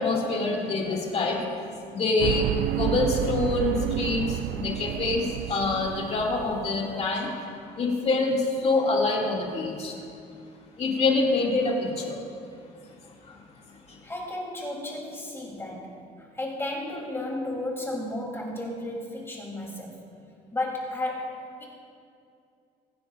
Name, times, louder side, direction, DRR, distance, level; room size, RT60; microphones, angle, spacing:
voice 1, 0.0-1.4 1.9-2.4 2.8-4.2 4.6-5.2 5.5-7.3 7.8-8.4 8.6-9.9 10.8-12.2, left 3 dB, 40° left, -2 dB, 2.5 m, -25 dB
sound 1, 2.2-7.0, right 12 dB, 80° right, 0.4 m, -30 dB
voice 2, 14.0-20.0 20.5-21.6, left 1 dB, 15° left, -2 dB, 3.4 m, -33 dB
24.0 x 10.0 x 2.6 m, 2.4 s
cardioid pair, 110°, 17 cm